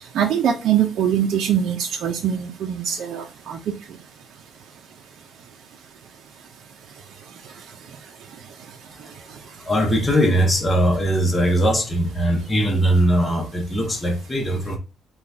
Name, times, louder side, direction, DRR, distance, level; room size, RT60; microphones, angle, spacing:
voice 1, 0.1-3.6, right 9 dB, 70° right, 0.5 m, -22 dB
voice 2, 8.9-9.3 9.5-14.8, equal, 15° left, 0.9 m, -20 dB
3.9 x 2.3 x 3.3 m
cardioid pair, 130°, 0 cm